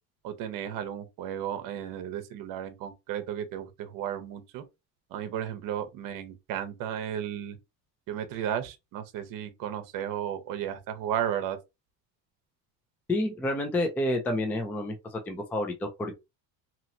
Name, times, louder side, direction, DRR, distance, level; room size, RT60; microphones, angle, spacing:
voice 1, 0.2-4.6 5.1-7.6 8.1-11.6, right 10 dB, 60° right, 0.8 m, -34 dB
voice 2, 13.1-16.2, left 1 dB, 5° left, 0.3 m, -29 dB
2.9 x 2.8 x 2.6 m
cardioid pair, 160°, 38 cm